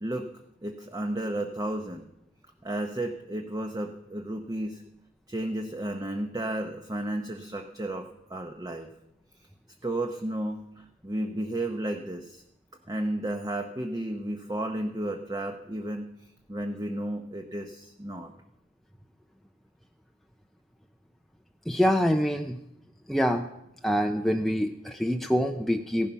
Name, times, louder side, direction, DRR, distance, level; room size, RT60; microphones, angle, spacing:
voice 1, 0.6-2.1 2.6-4.8 5.3-8.9 9.8-12.4 12.9-16.1 16.5-18.3, right 1 dB, 20° right, 4 dB, 0.8 m, -33 dB
voice 2, 21.7-22.6 23.1-23.4 23.8-26.1, equal, ahead, 4 dB, 0.5 m, -25 dB
16.0 x 11.0 x 5.7 m, 0.84 s
head